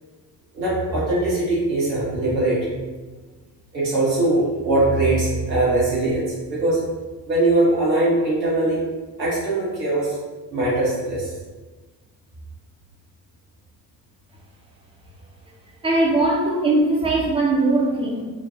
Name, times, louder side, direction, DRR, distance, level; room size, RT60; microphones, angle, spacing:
voice 1, 0.5-2.7 3.7-6.8 7.3-8.8 9.2-10.2 10.5-11.3, right 2 dB, 85° right, -7 dB, 1.1 m, -21 dB
voice 2, 15.8-18.2, right 2 dB, 10° right, -3 dB, 0.6 m, -20 dB
3.2 x 2.1 x 2.6 m, 1.3 s
figure-of-eight pair, 55°, 49 cm